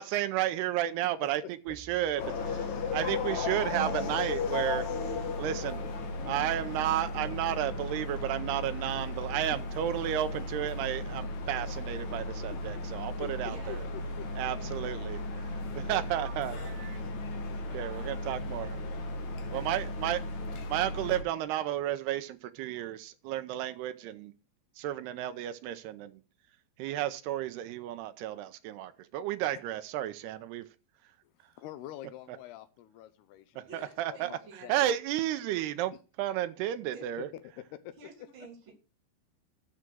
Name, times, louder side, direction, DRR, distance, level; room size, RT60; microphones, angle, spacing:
voice 1, 0.0-2.2 2.5-2.6 2.9-4.9 5.4-5.8 6.3-13.8 14.4-16.6 17.7-18.8 19.5-20.2 20.7-24.3 24.8-26.2 26.8-30.7 33.6-34.3 34.7-35.9 36.2-37.3, right 12 dB, 80° right, 2.5 m, -32 dB
sound 1, 1.7-10.8, right 7 dB, 65° right, 3.2 m, -50 dB
sound 2, 2.2-21.2, left 3 dB, 55° left, 2.2 m, -35 dB
voice 2, 6.2-7.0 9.4-9.6 13.2-14.3 31.2-31.3 31.6-34.7 37.3-37.4 37.7-37.9, left 12 dB, 80° left, 2.5 m, -46 dB
voice 3, 13.4-13.8 14.7-14.8 15.9-17.1 17.8-18.5 19.5-19.6 33.7-34.9 36.9-37.0 38.0-38.7, right 6 dB, 30° right, 3.7 m, -50 dB
13.0 x 5.0 x 6.2 m
omnidirectional pair, 5.1 m